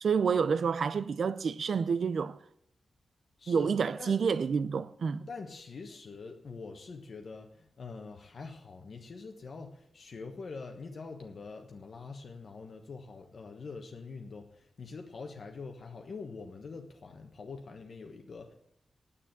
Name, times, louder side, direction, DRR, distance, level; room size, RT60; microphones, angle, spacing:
voice 1, 0.0-2.4 3.5-5.3, right 6 dB, 60° right, 0.6 m, -29 dB
voice 2, 3.4-4.2 5.2-18.5, left 4 dB, 50° left, 1.2 m, -44 dB
9.6 x 8.5 x 8.8 m
wide cardioid pair, 175°, 0 cm